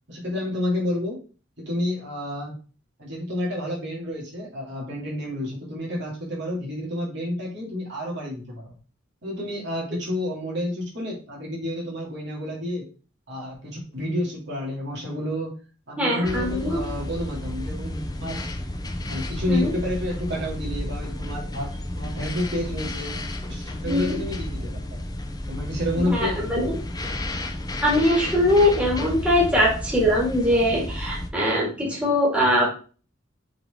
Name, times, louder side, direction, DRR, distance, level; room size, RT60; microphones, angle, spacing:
voice 1, 0.1-1.2 1.6-2.5 3.0-8.7 9.2-12.8 13.3-15.5 15.9-18.4 19.1-21.7 22.0-23.2 23.4-24.8 25.5-26.6, left 1 dB, 60° right, -3 dB, 2.7 m, -30 dB
voice 2, 16.0-16.8 19.5-19.7 23.9-24.2 26.0-26.7 27.8-32.6, left 1 dB, 5° right, -5 dB, 2.3 m, -22 dB
sound 1, 16.2-31.3, left 1 dB, 20° left, 0.6 m, -32 dB
6.9 x 4.2 x 3.6 m, 0.38 s
head